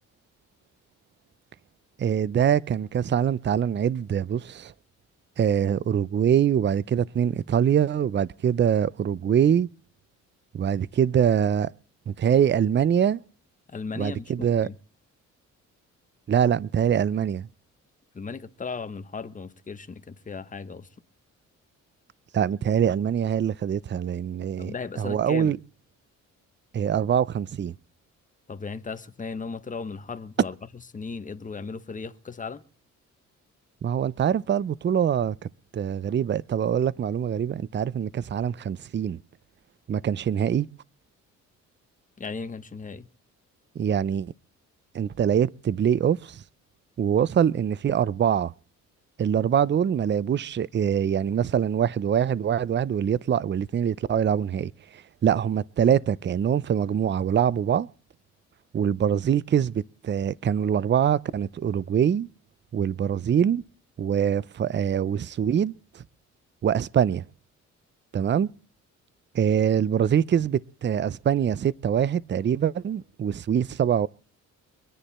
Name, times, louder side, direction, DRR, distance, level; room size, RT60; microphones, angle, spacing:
voice 1, 2.0-4.7 5.4-9.7 10.5-11.7 12.1-13.2 14.0-14.7 16.3-17.5 22.3-25.6 26.7-27.7 33.8-35.4 35.7-39.2 39.9-40.7 43.8-44.3 44.9-46.4 47.0-48.5 49.2-57.9 58.7-62.3 62.7-63.6 64.0-66.0 66.6-67.2 68.1-68.5 69.3-74.1, right 8 dB, 35° right, 0.6 m, -24 dB
voice 2, 13.7-14.7 18.1-20.9 24.6-25.5 28.5-30.5 30.9-32.6 42.2-43.1, left 5 dB, 25° left, 1.4 m, -36 dB
24.5 x 10.0 x 4.3 m
cardioid pair, 90°, 30 cm